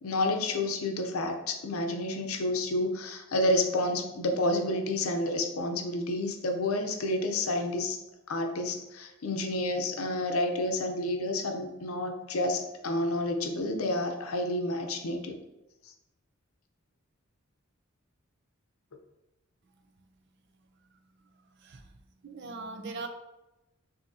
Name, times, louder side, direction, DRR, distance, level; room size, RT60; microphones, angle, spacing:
voice 1, 0.0-8.0 8.3-15.4, left 1 dB, 90° left, 4 dB, 0.6 m, -30 dB
voice 2, 22.2-23.1, right 3 dB, 55° right, 6 dB, 0.5 m, -39 dB
6.3 x 2.8 x 2.7 m, 0.98 s
head